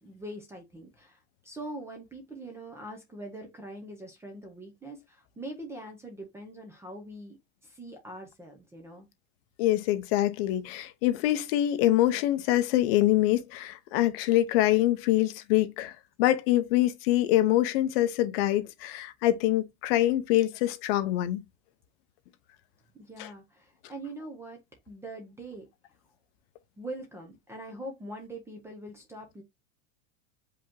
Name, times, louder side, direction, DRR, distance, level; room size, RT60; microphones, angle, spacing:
voice 1, 0.0-7.4 7.6-9.1 22.9-24.6 24.9-25.7 26.8-29.4, right 1 dB, 5° right, 0.5 m, -43 dB
voice 2, 9.6-21.4 23.2-23.3, left 14 dB, 50° left, 0.7 m, -25 dB
5.1 x 2.8 x 3.6 m
supercardioid pair, 180°, 39 cm